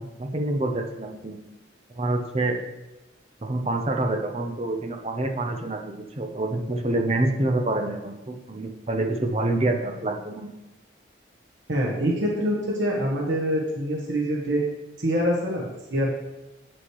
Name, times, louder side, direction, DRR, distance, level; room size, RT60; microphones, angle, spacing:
voice 1, 0.0-1.4 2.0-2.6 3.4-10.5, right 2 dB, 35° right, 4 dB, 0.7 m, -27 dB
voice 2, 11.7-14.6 15.0-16.1, equal, 85° right, -2 dB, 1.1 m, -25 dB
8.0 x 6.1 x 3.1 m, 1.0 s
head